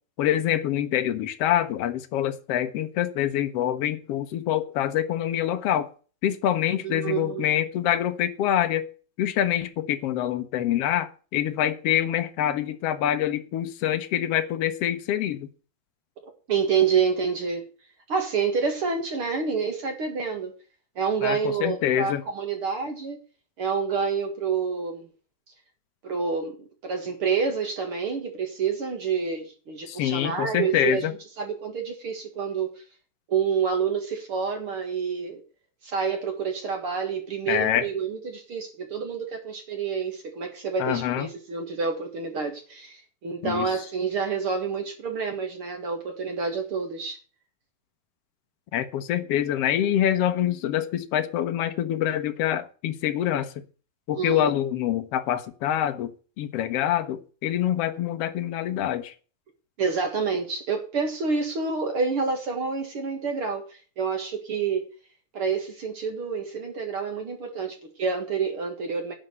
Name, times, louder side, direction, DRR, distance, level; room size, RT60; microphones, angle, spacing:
voice 1, 0.2-5.9 6.2-8.9 9.2-15.5 21.2-22.2 29.9-31.1 37.5-37.9 40.8-41.3 43.4-43.8 48.7-53.6 54.1-59.1, left 11 dB, 70° left, 1.5 m, -25 dB
voice 2, 6.8-7.4 16.2-17.7 18.1-20.5 21.0-23.2 23.6-25.1 26.0-26.6 26.8-31.0 31.4-32.7 33.3-35.4 35.8-47.2 54.1-54.5 59.8-63.6 64.0-64.9 65.3-69.1, right 5 dB, 45° right, 2.1 m, -28 dB
11.5 x 5.1 x 8.0 m
omnidirectional pair, 4.1 m